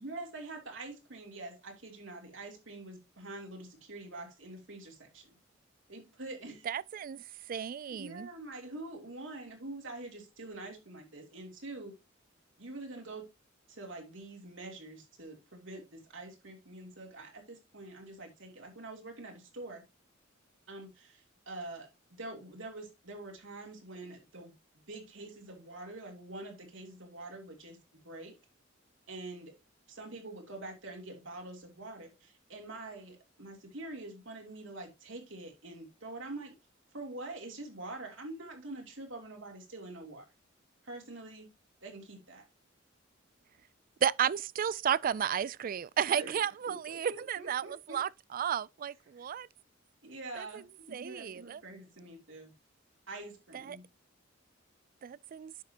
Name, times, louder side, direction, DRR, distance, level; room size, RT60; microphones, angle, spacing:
voice 1, 0.0-5.4 5.9-6.7 7.9-11.9 12.6-13.3 13.7-19.8 20.7-24.5 24.9-27.8 28.0-28.3 29.1-29.5 29.9-36.5 36.9-40.3 40.8-41.5 41.8-42.4 46.2-48.0 50.0-52.5 53.1-53.8, right 2 dB, 70° right, 2.9 m, -45 dB
voice 2, 6.7-8.3 44.0-49.5 50.4-50.5 50.9-51.6 53.5-53.8 55.0-55.5, right 8 dB, 45° right, 0.3 m, -33 dB
10.0 x 6.5 x 2.9 m
head